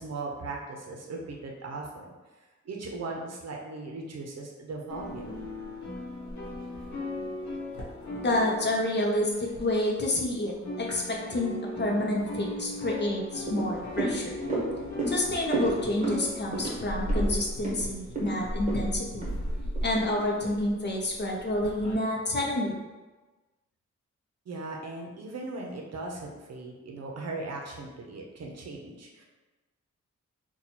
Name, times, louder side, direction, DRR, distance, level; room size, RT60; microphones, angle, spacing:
voice 1, 0.0-2.1 2.6-5.3 24.5-29.2, right 3 dB, 60° right, -1 dB, 0.7 m, -38 dB
sound 1, 4.9-10.2 10.5-21.9, left 1 dB, 70° left, 0.9 m, -37 dB
voice 2, 8.2-14.3 15.1-19.3 19.8-22.7, left 1 dB, 35° left, -1 dB, 0.6 m, -29 dB
sound 2, 13.4-19.9 20.3-20.4, right 2 dB, 25° right, 1.2 m, -33 dB
2.9 x 2.2 x 4.1 m, 1.2 s
wide cardioid pair, 135°, 30 cm